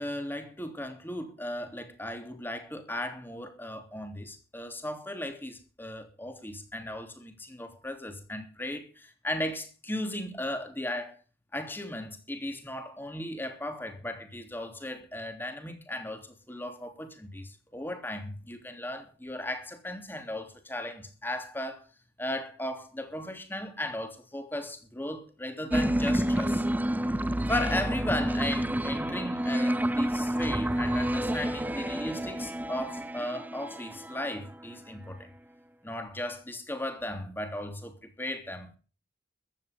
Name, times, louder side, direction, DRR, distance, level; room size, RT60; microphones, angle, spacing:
voice 1, 0.0-11.2 11.5-21.8 22.2-26.6 27.5-35.3 35.8-38.8, left 1 dB, 10° left, 3.1 m, -36 dB
sound 1, 25.7-34.7, right 1 dB, 10° right, 0.6 m, -29 dB
15.0 x 11.0 x 5.2 m
head